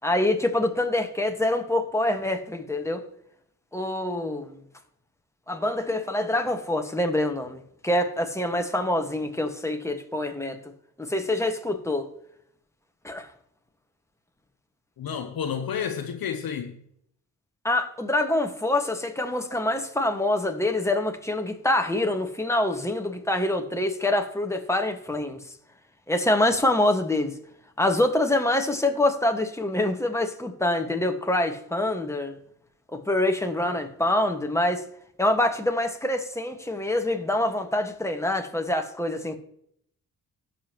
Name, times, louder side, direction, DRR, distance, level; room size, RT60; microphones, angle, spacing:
voice 1, 0.0-3.0 3.7-4.6 5.5-10.6 11.0-12.1 13.0-13.3 17.6-25.4 26.1-27.3 27.8-32.3 32.9-34.8 35.2-39.4, left 1 dB, 5° left, 1.6 m, -25 dB
voice 2, 15.0-16.8, left 7 dB, 60° left, 0.9 m, -30 dB
17.0 x 5.7 x 3.0 m
supercardioid pair, 40°, 40 cm